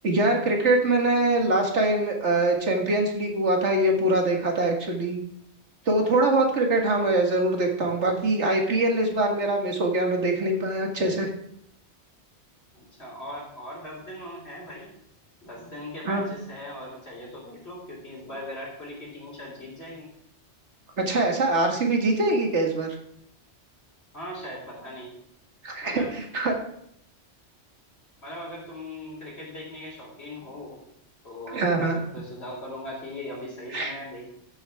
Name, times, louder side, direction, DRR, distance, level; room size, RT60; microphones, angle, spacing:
voice 1, 0.0-5.2 5.9-11.3 16.1-16.2 21.0-22.9 25.6-26.5 31.5-32.0 33.7-33.9, right 2 dB, 80° right, 2 dB, 2.1 m, -23 dB
voice 2, 12.7-14.9 15.4-20.1 24.1-25.1 25.8-26.1 28.2-30.8 31.2-34.2, left 1 dB, 65° left, -2 dB, 3.8 m, -39 dB
13.5 x 7.5 x 3.5 m, 0.73 s
omnidirectional pair, 1.2 m